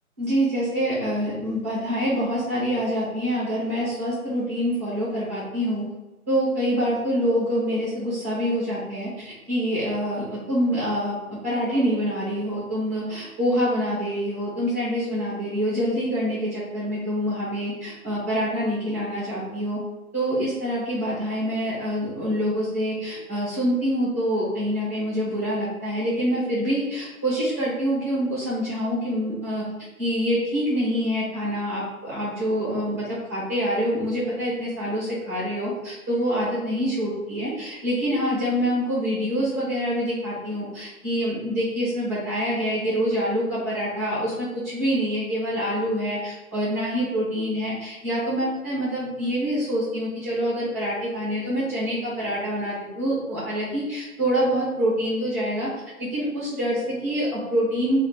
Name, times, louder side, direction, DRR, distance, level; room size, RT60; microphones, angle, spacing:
voice 1, 0.2-5.9 6.3-19.8 20.1-29.6 30.0-55.7 56.0-58.0, equal, 10° right, -7 dB, 0.7 m, -26 dB
3.7 x 2.3 x 4.5 m, 1.1 s
hypercardioid pair, 160°, 43 cm